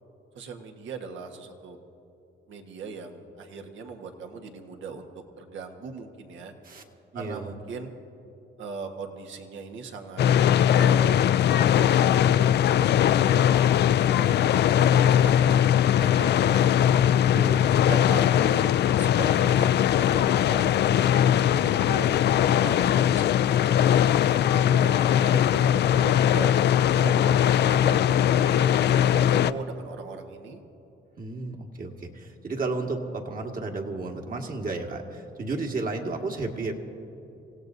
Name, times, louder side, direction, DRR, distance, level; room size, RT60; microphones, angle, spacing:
voice 1, 0.3-1.8 2.5-6.5 7.1-7.9 8.6-10.2 10.7-13.4 14.2-16.8 17.9-21.0 21.9-22.1 22.5-23.3 23.7-26.5 26.9-30.6, right 4 dB, 70° right, 3 dB, 1.4 m, -39 dB
voice 2, 7.1-7.5 17.3-17.8 21.5-22.0 31.2-36.7, right 3 dB, 45° right, 2 dB, 1.8 m, -33 dB
sound 1, 10.2-29.5, left 10 dB, 60° left, 0.4 m, -20 dB
26.5 x 16.5 x 2.7 m, 3.0 s
cardioid pair, 90°, 20 cm